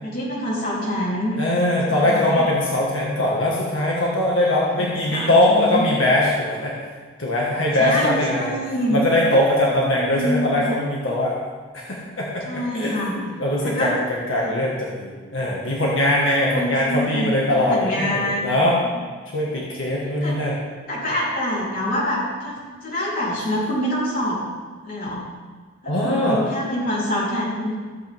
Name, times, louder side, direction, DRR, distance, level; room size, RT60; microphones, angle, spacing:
voice 1, 0.0-1.4 1.9-2.5 4.8-5.9 7.8-9.0 9.9-10.8 12.4-13.1 13.6-13.9 14.4-14.7 16.4-18.5 18.8-19.0 20.2-20.4 20.9-24.4 24.8-25.3 25.8-27.7, equal, 45° left, -7 dB, 3.8 m, -26 dB
voice 2, 1.4-6.7 7.2-8.5 8.9-11.3 11.7-12.4 12.7-18.8 19.3-20.5 25.9-26.4, left 1 dB, 90° left, -4 dB, 1.8 m, -21 dB
14.5 x 8.3 x 3.7 m, 1.5 s
head